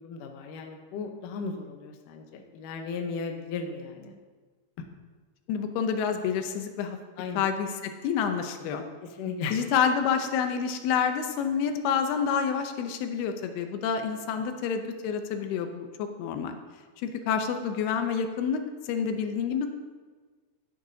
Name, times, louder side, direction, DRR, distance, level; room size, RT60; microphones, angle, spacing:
voice 1, 0.0-4.1 7.2-7.5 9.0-9.6, left 4 dB, 70° left, 3 dB, 2.2 m, -36 dB
voice 2, 5.5-7.0 7.4-8.8 9.5-16.6 17.0-19.7, left 7 dB, 85° left, 6 dB, 2.7 m, -28 dB
13.0 x 10.0 x 2.7 m, 1.4 s
omnidirectional pair, 4.4 m